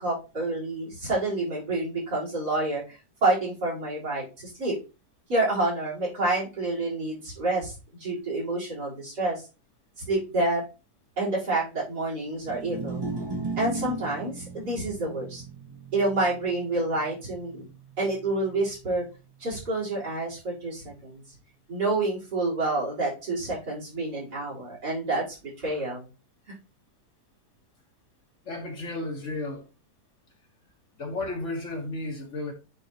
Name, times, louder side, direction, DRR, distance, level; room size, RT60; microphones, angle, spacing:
voice 1, 0.0-4.8 5.3-9.4 10.0-10.6 11.2-13.0 13.6-15.4 15.9-17.7 18.0-19.0 19.4-21.2 21.7-26.1 26.5-26.6, right 2 dB, 75° right, 4.4 m, -28 dB
sound 1, 12.4-18.7, right 3 dB, 20° right, 0.8 m, -37 dB
voice 2, 28.4-29.6 31.0-32.5, left 2 dB, 50° left, 1.5 m, -33 dB
9.2 x 3.9 x 2.8 m
omnidirectional pair, 1.7 m